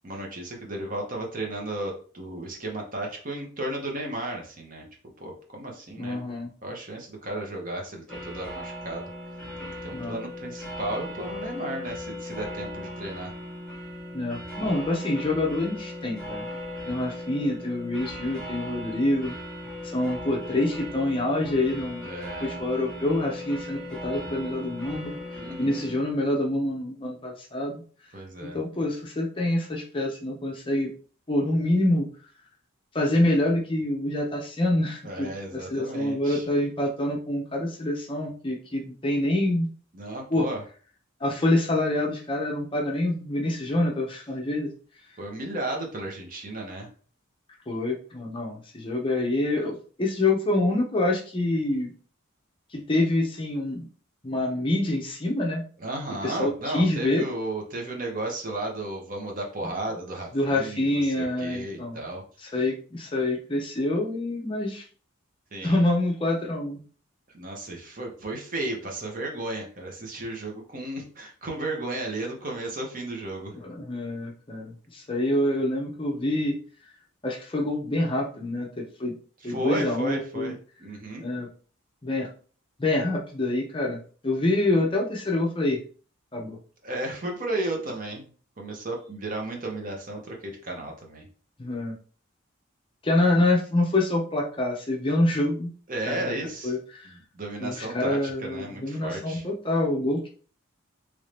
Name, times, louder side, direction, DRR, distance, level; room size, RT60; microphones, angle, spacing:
voice 1, 0.0-4.8 5.2-6.2 6.6-9.1 9.6-13.3 22.0-22.6 25.4-25.9 28.1-28.6 35.0-36.4 39.9-40.6 45.2-46.9 55.8-62.5 65.5-65.8 67.3-73.6 79.4-81.3 86.8-88.3 88.6-91.3 95.9-96.7 97.1-99.4, right 1 dB, 40° right, 1 dB, 0.9 m, -34 dB
voice 2, 6.0-6.5 9.9-10.2 14.1-16.5 16.9-19.3 19.8-22.1 22.4-25.2 25.6-27.8 28.4-30.9 31.3-32.1 32.9-39.7 40.3-40.5 41.2-44.7 47.7-51.9 52.7-53.8 54.2-55.6 56.2-57.2 59.6-59.7 60.3-62.0 62.4-64.8 65.6-66.8 73.5-76.6 77.2-79.1 79.4-80.5 81.2-81.5 82.0-82.3 82.8-85.8 86.3-86.6 91.6-91.9 93.0-95.7 96.1-96.3 96.6-97.1 97.6-100.3, left 1 dB, 25° left, -1 dB, 0.6 m, -26 dB
sound 1, 8.1-26.0, left 1 dB, 5° left, 1.3 m, -38 dB
3.1 x 2.7 x 3.2 m, 0.41 s
head